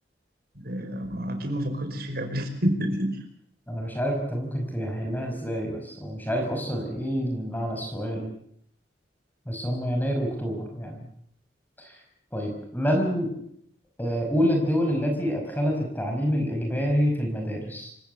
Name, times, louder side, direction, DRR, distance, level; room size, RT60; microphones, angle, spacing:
voice 1, 0.6-3.1, equal, 60° right, 7 dB, 5.3 m, -28 dB
voice 2, 3.7-8.3 9.5-11.1 11.8-12.0 12.3-13.3 14.0-17.9, equal, 10° left, 2 dB, 5.2 m, -27 dB
27.5 x 17.0 x 8.1 m, 0.70 s
head